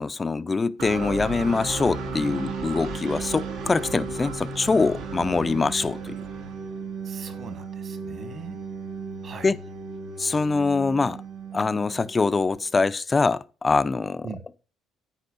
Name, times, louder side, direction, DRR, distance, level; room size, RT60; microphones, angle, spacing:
voice 1, 0.0-6.2 9.4-9.6 10.2-11.2 11.5-14.3, left 4 dB, 20° left, 0.4 m, -24 dB
sound 1, 0.8-12.6, right 4 dB, 90° right, 2.2 m, -35 dB
voice 2, 7.0-8.6 9.2-9.5 14.2-14.4, right 5 dB, 40° right, 1.5 m, -40 dB
9.8 x 9.2 x 2.5 m
cardioid pair, 140°, 0 cm